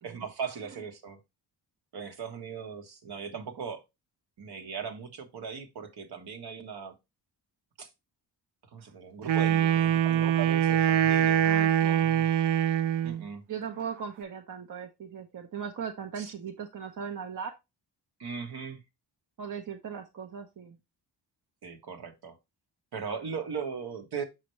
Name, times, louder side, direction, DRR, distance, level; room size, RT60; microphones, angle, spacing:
voice 1, 0.0-1.2 1.9-3.8 4.4-6.9 7.8-7.9 8.7-11.5 11.8-12.3 13.0-13.4 16.2-16.3 18.2-18.8 21.6-22.4 22.9-24.2, right 6 dB, 65° right, 1.4 m, -38 dB
Wind instrument woodwind instrument, 9.2-13.2, right 10 dB, 85° right, 0.7 m, -24 dB
voice 2, 11.4-12.1 13.5-17.5 19.4-20.8, right 7 dB, 50° right, 0.9 m, -38 dB
6.2 x 5.8 x 3.2 m
wide cardioid pair, 150°, 41 cm